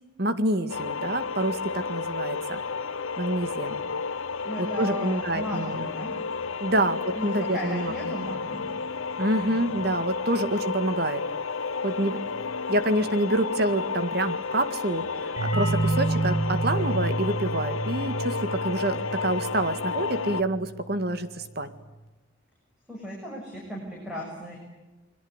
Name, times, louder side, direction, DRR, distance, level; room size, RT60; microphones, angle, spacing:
voice 1, 0.2-2.6 3.2-3.8 4.6-5.8 6.6-8.1 9.2-11.2 11.8-12.2 12.7-21.7, right 1 dB, 50° right, 10 dB, 2.0 m, -27 dB
sound 1, 0.7-20.4, left 5 dB, 80° left, 0.9 m, -32 dB
voice 2, 4.4-6.1 7.1-8.7 9.5-9.6 22.9-24.6, equal, 5° right, -2 dB, 6.9 m, -36 dB
sound 2, 15.4-20.8, right 2 dB, 80° right, 5.1 m, -29 dB
29.5 x 22.0 x 8.2 m, 1.1 s
head